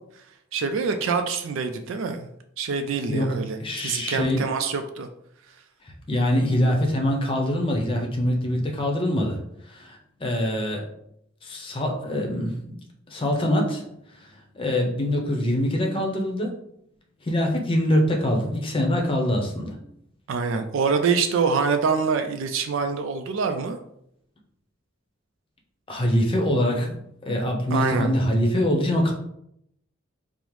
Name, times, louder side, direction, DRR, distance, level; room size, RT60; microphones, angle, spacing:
voice 1, 0.5-2.3 2.6-3.6 3.8-5.1 20.3-23.8 27.7-28.1, right 5 dB, 65° right, 6 dB, 0.3 m, -25 dB
voice 2, 3.1-4.5 6.1-9.4 9.7-10.9 11.4-12.7 13.1-13.8 14.2-16.6 17.2-19.8 25.9-27.0 27.2-29.1, left 1 dB, 25° left, 1 dB, 0.7 m, -24 dB
5.3 x 2.0 x 3.1 m, 0.74 s
head